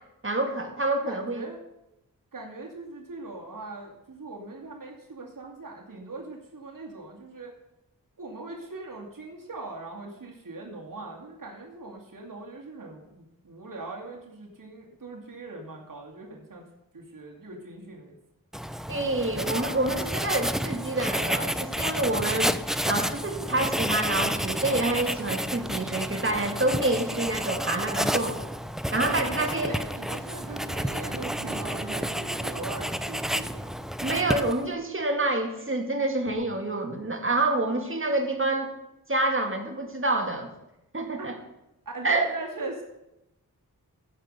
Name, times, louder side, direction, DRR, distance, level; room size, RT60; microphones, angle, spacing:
voice 1, 0.2-1.4 18.9-22.6 22.9-28.4 28.9-29.7 34.0-38.7 39.1-40.5 40.9-41.3 42.0-42.3, right 2 dB, 35° right, 3 dB, 2.1 m, -27 dB
voice 2, 1.0-1.6 2.3-7.5 8.2-16.6 16.9-18.1 29.2-33.7 41.2-41.3 41.9-42.8, right 2 dB, 60° right, -2 dB, 2.5 m, -40 dB
Writing, 18.5-34.7, equal, ahead, 0.5 m, -30 dB
sound 1, 30.5-35.4 36.3-36.4, right 4 dB, 90° right, 1.3 m, -45 dB
15.0 x 5.6 x 6.6 m, 0.89 s
wide cardioid pair, 60°, 36 cm